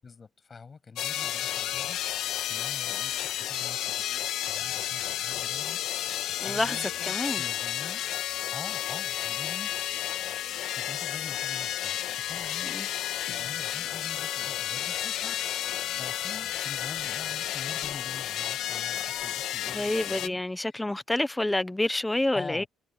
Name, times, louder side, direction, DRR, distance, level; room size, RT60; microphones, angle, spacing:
voice 1, 0.0-4.0 4.4-6.0 6.4-8.0 8.5-9.8 10.6-15.4 15.9-20.8 22.3-22.7, left 5 dB, 35° left, 7.7 m, -45 dB
sound 1, 1.0-20.3, left 12 dB, 80° left, 1.6 m, -32 dB
voice 2, 6.4-7.4 12.7-12.9 19.7-22.6, left 1 dB, 10° left, 1.1 m, -28 dB
cardioid pair, 110°, 0 cm